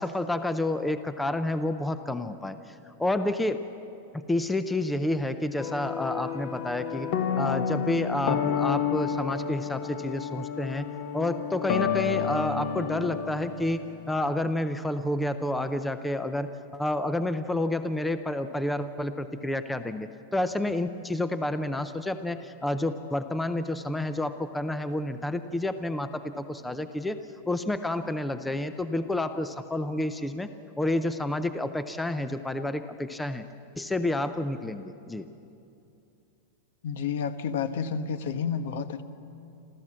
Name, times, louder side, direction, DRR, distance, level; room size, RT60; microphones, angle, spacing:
voice 1, 0.0-3.6 4.3-7.1 7.4-10.9 11.1-27.2 27.5-30.5 30.8-33.5 33.8-35.2, left 1 dB, 5° left, 10 dB, 0.5 m, -29 dB
sound 1, 5.6-13.9, left 7 dB, 45° left, 1.4 m, -30 dB
voice 2, 36.8-39.0, left 6 dB, 65° left, 11 dB, 1.0 m, -30 dB
27.0 x 14.5 x 7.5 m, 2.7 s
supercardioid pair, 170°, 0 cm